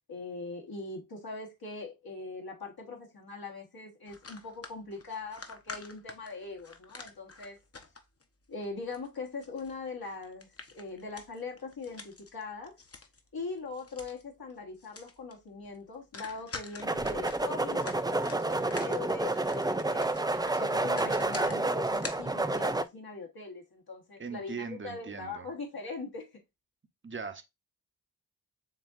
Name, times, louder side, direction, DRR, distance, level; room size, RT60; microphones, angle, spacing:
voice 1, 0.1-7.6 8.5-12.8 13.3-20.1 20.6-26.3, left 3 dB, 70° left, 1.5 m, -41 dB
sound 1, 4.1-8.2 8.6-13.3 13.6-14.2 14.5-14.6 14.8-15.3 15.6-15.8 16.1-22.9, left 4 dB, 40° left, 0.9 m, -47 dB
sound 2, 16.8-22.8, right 2 dB, 10° right, 0.4 m, -29 dB
voice 2, 24.2-25.5 27.0-27.4, right 5 dB, 30° right, 0.8 m, -39 dB
7.5 x 2.8 x 2.5 m
wide cardioid pair, 90°, 38 cm